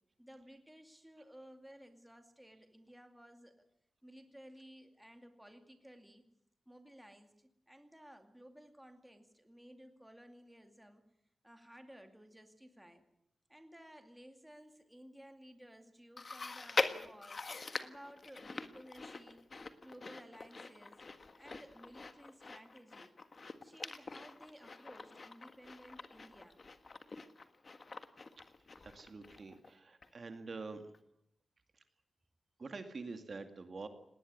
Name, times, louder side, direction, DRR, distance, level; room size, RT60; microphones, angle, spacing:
voice 1, 0.2-3.5 4.0-6.2 6.7-11.0 11.4-13.0 13.5-17.4 17.8-19.4 19.8-21.1 21.4-23.1 23.6-26.6, equal, 5° right, 6 dB, 2.4 m, -56 dB
Chewing mastication, 16.2-29.7 30.0-30.1 30.9-31.0, left 3 dB, 35° left, 1.5 m, -43 dB
voice 2, 28.8-30.8 32.6-33.9, right 4 dB, 40° right, 7 dB, 2.2 m, -46 dB
19.5 x 18.5 x 9.6 m, 0.77 s
wide cardioid pair, 145°, 0 cm